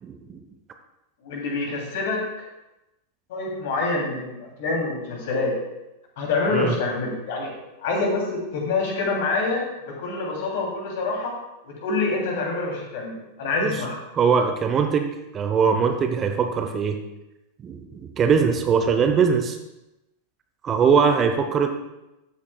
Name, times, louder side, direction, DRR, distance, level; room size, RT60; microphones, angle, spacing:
voice 1, 0.0-0.4 6.5-6.8 13.6-13.8 14.1-17.0 17.6-19.6 20.6-21.7, right 6 dB, 25° right, 6 dB, 0.7 m, -21 dB
voice 2, 1.2-2.2 3.3-5.6 6.2-7.5 7.8-11.4 11.6-13.9, left 3 dB, 50° left, -1 dB, 2.8 m, -26 dB
13.5 x 8.4 x 2.3 m, 0.95 s
figure-of-eight pair, 90°, 0 cm